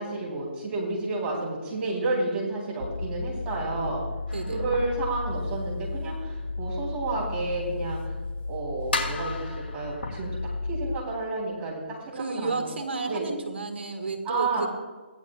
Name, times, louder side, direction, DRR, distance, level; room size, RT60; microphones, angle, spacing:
voice 1, 0.0-4.0 4.5-8.1 8.5-10.3 10.7-12.7 13.1-13.3 14.2-14.7, right 2 dB, 20° right, -4 dB, 3.8 m, -31 dB
sound 1, 2.8-11.0, left 3 dB, 80° left, 0.7 m, -34 dB
sound 2, 4.3-5.9 6.4-6.5 6.9-7.0 8.0-8.1 8.9-10.6, left 3 dB, 60° left, 2.9 m, -35 dB
voice 2, 4.3-4.6 12.1-14.7, right 3 dB, 70° right, 6 dB, 1.9 m, -32 dB
16.5 x 11.0 x 2.5 m, 1.4 s
figure-of-eight pair, 145°, 6 cm